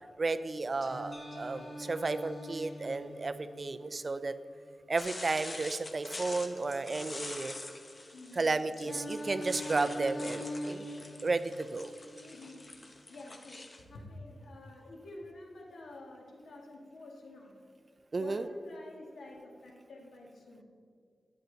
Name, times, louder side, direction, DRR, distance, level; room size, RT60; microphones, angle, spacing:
voice 1, 0.2-4.4 4.9-7.6 8.3-10.9 11.2-11.9 18.1-18.5, right 3 dB, 40° right, 12 dB, 0.5 m, -33 dB
Singing, 0.8-4.8 8.8-12.8, equal, 50° left, 1.3 m, -43 dB
sound 1, 1.1-5.2, right 1 dB, 10° left, 1.7 m, -61 dB
sound 2, 5.0-13.8, left 2 dB, 30° left, 1.1 m, -46 dB
voice 2, 12.2-12.7 13.1-17.7 18.1-20.6, left 2 dB, 85° left, -1 dB, 2.1 m, -48 dB
12.5 x 9.7 x 4.0 m, 2.2 s
wide cardioid pair, 105°, 0 cm